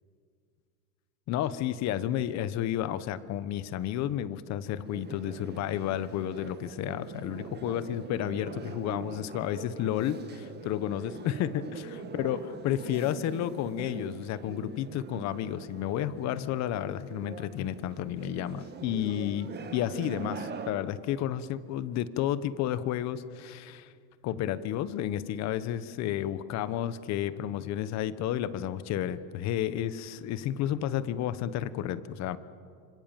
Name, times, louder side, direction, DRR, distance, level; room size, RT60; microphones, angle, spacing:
voice 1, 1.3-11.8 12.1-12.4 12.6-23.9 24.2-32.4, left 11 dB, 40° left, 14 dB, 1.1 m, -31 dB
sound 1, 4.8-20.7, right 5 dB, 25° right, 1.7 m, -43 dB
26.0 x 26.0 x 7.5 m, 2.2 s
supercardioid pair, 135°, 42 cm